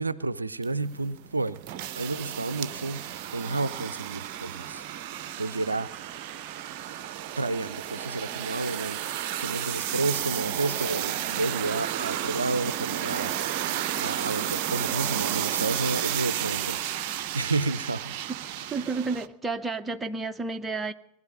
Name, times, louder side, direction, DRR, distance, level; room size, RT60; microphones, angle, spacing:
voice 1, 0.0-1.6 1.9-3.1 3.3-5.9 7.4-9.0 9.4-13.3 14.0-16.9 17.3-18.2, right 3 dB, 80° right, 17 dB, 0.4 m, -31 dB
sound 1, 0.6-19.3, right 11 dB, 45° right, 0.6 m, -32 dB
voice 2, 18.7-20.9, right 4 dB, 10° right, 8 dB, 0.8 m, -31 dB
19.5 x 11.0 x 5.6 m, 0.90 s
figure-of-eight pair, 90°, 0 cm